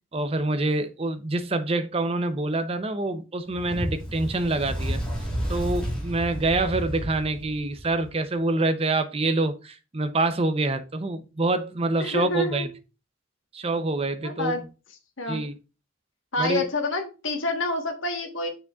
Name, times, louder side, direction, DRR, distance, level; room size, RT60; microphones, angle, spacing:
voice 1, 0.1-5.0 5.5-12.7 13.5-14.5 15.3-15.5 16.4-16.6, right 2 dB, 30° right, 0.6 m, -26 dB
Fire, 3.5-8.1, equal, 5° left, 2.7 m, -31 dB
voice 2, 12.0-12.7 14.2-14.6 15.2-15.4 16.3-18.5, left 2 dB, 80° left, 1.4 m, -28 dB
6.6 x 6.1 x 2.4 m
head